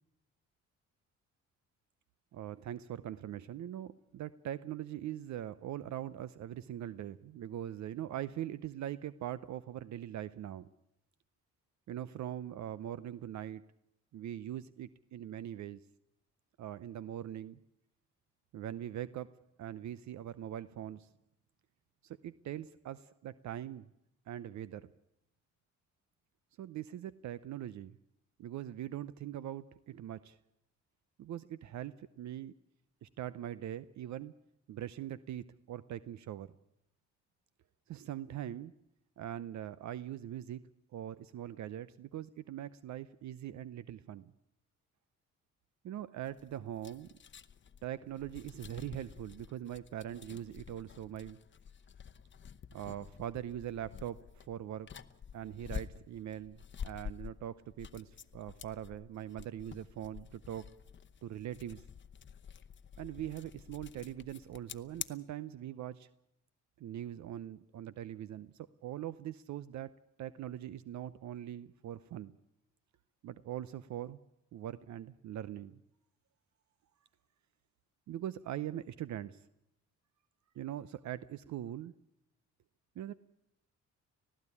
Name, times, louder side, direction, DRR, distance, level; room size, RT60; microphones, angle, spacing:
voice 1, 2.3-10.7 11.9-13.6 14.1-15.8 16.6-17.6 18.5-19.3 19.6-21.1 22.0-23.9 24.3-24.9 26.6-28.0 28.4-30.4 31.2-32.5 33.0-34.3 34.7-36.5 37.9-38.7 39.2-40.6 40.9-44.3 45.8-47.1 47.8-51.4 52.7-54.9 55.3-60.7 61.2-61.8 63.0-66.1 66.8-72.3 73.2-74.2 74.5-75.8 78.1-79.5 80.5-81.9 83.0-83.1, right 11 dB, 65° right, 16 dB, 0.7 m, -42 dB
sound 1, 46.2-65.1, left 7 dB, 40° left, 0.9 m, -49 dB
19.5 x 15.0 x 9.8 m, 0.81 s
cardioid pair, 90°, 30 cm